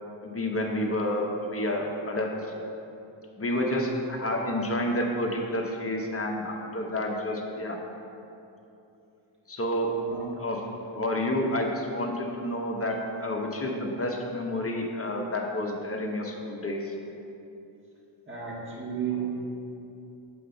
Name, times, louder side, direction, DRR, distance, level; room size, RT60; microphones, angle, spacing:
voice 1, 0.2-2.3 3.4-7.8 9.5-9.9 10.4-10.6 10.9-16.9, left 1 dB, 30° left, 0 dB, 0.9 m, -29 dB
voice 2, 1.7-2.1 2.3-2.4 10.1-10.4 18.3-19.3, right 7 dB, 25° right, -4 dB, 1.7 m, -34 dB
7.8 x 5.4 x 3.9 m, 2.8 s
wide cardioid pair, 75°, 49 cm